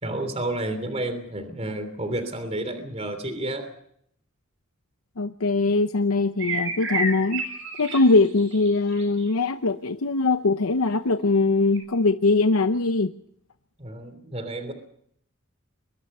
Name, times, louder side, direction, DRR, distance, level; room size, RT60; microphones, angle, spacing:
voice 1, 0.0-3.7 13.8-14.7, right 1 dB, 30° right, 9 dB, 3.1 m, -30 dB
voice 2, 5.2-7.4 7.8-13.1, left 3 dB, 85° left, 9 dB, 0.8 m, -21 dB
sound 1, 6.4-9.3 11.7-11.8, right 3 dB, 60° right, 7.5 m, -30 dB
23.0 x 23.0 x 5.5 m, 0.69 s
head